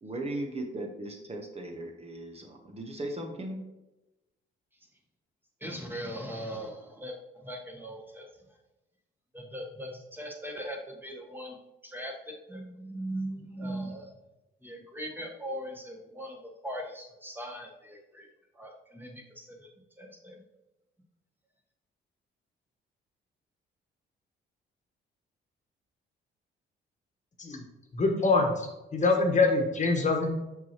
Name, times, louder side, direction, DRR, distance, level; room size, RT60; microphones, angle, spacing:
voice 1, 0.0-3.6, right 1 dB, 30° right, 3 dB, 1.0 m, -37 dB
voice 2, 5.6-8.3 9.3-11.6 11.8-12.1 12.5-14.1 14.6-16.4 16.6-18.3 18.5-19.7 20.0-20.4, equal, 10° right, 0 dB, 1.3 m, -39 dB
voice 3, 27.9-30.3, left 3 dB, 35° left, 2 dB, 1.2 m, -25 dB
5.9 x 5.7 x 3.0 m, 1.0 s
cardioid pair, 90°, 20 cm